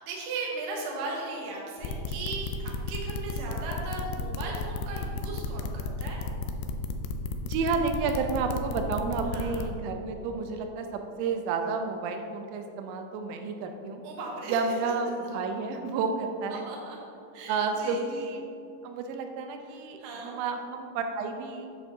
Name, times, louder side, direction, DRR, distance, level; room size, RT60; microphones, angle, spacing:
voice 1, 0.0-6.2 9.3-9.7 14.0-14.6 16.5-17.0 17.3-18.2 20.0-20.4, right 3 dB, 65° right, -2 dB, 2.3 m, -37 dB
sound 1, 1.8-9.6, left 4 dB, 90° left, 2.9 m, -33 dB
voice 2, 7.4-14.0 14.5-16.6 17.5-18.5 18.8-21.7, right 4 dB, 90° right, 5 dB, 3.0 m, -31 dB
9.4 x 8.2 x 2.6 m, 2.6 s
omnidirectional pair, 5.2 m